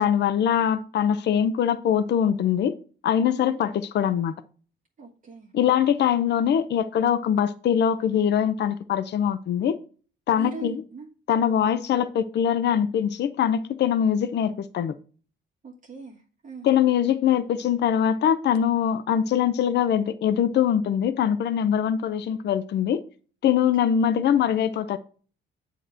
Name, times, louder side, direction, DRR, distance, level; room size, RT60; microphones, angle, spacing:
voice 1, 0.0-2.8 3.0-4.3 5.5-9.8 10.3-10.8 11.3-14.9 16.6-23.0 23.4-25.0, left 9 dB, 60° left, 0.6 m, -23 dB
voice 2, 5.0-5.5 6.0-6.2 10.4-11.1 15.6-16.7 23.8-23.9, right 4 dB, 40° right, 1.4 m, -40 dB
8.0 x 3.0 x 6.1 m
cardioid pair, 90°, 20 cm